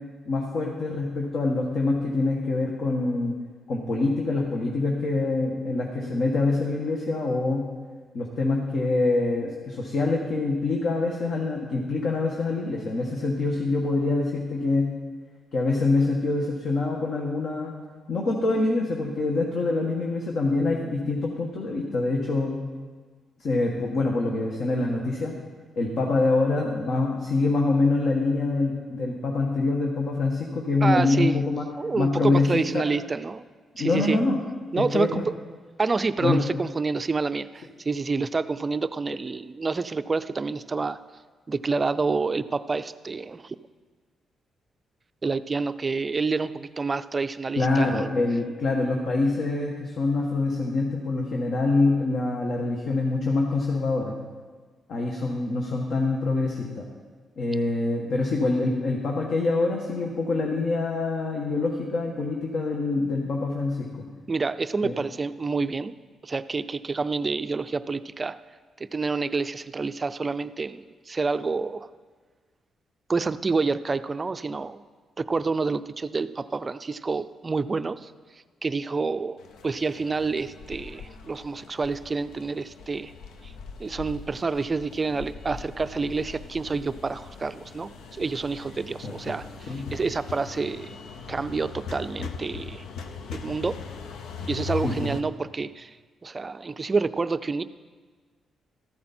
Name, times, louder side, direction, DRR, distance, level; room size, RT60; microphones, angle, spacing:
voice 1, 0.3-3.3 3.7-7.6 8.1-14.9 15.5-17.8 18.1-22.6 23.4-25.3 25.7-31.7 32.0-32.8 33.8-34.4 34.7-35.2 36.2-36.4 47.6-54.1 54.9-56.8 57.4-64.1 64.8-64.9 89.0-89.3 89.7-89.8 94.8-95.1, left 3 dB, 65° left, -1 dB, 1.6 m, -25 dB
voice 2, 30.8-31.4 31.8-33.5 33.8-34.2 34.7-35.2 35.8-41.0 41.5-43.6 45.2-48.1 64.3-65.9 66.2-68.4 68.8-71.9 73.1-74.8 75.2-78.1 78.6-79.4 79.6-83.1 83.4-83.5 83.8-91.0 91.3-92.8 93.3-93.8 94.5-96.0 96.2-97.6, right 4 dB, 25° right, 13 dB, 0.4 m, -28 dB
sound 1, 79.4-95.2, left 5 dB, 85° left, 0.8 m, -40 dB
14.0 x 12.0 x 4.4 m, 1.5 s
cardioid pair, 125°, 0 cm